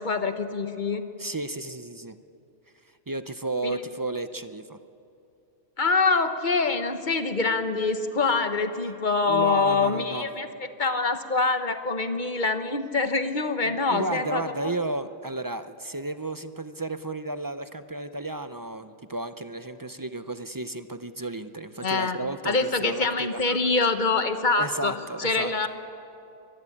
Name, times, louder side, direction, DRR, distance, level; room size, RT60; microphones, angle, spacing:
voice 1, 0.0-1.0 3.6-3.8 5.8-10.5 10.8-14.7 21.8-22.2 22.4-24.9 25.2-25.7, left 3 dB, 45° left, 8 dB, 1.2 m, -25 dB
voice 2, 1.2-2.2 3.1-4.8 9.2-10.3 13.9-23.4 24.6-25.5, right 2 dB, 25° right, 11 dB, 0.4 m, -33 dB
23.0 x 15.5 x 10.0 m, 2.7 s
omnidirectional pair, 1.2 m